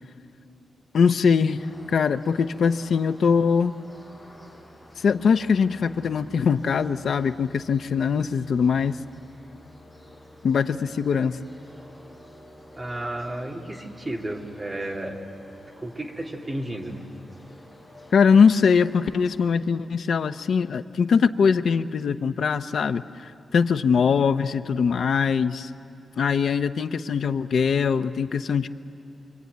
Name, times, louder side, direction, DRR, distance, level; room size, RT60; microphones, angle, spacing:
voice 1, 0.9-3.8 5.0-9.0 10.4-11.4 18.1-25.7 26.2-28.7, left 6 dB, 70° left, 10 dB, 0.7 m, -22 dB
sound 1, 1.5-19.5, left 1 dB, 5° left, 7.2 m, -50 dB
voice 2, 12.7-15.2 15.8-17.0, right 1 dB, 20° right, 0 dB, 2.4 m, -32 dB
26.5 x 23.0 x 9.4 m, 2.7 s
wide cardioid pair, 155°, 0 cm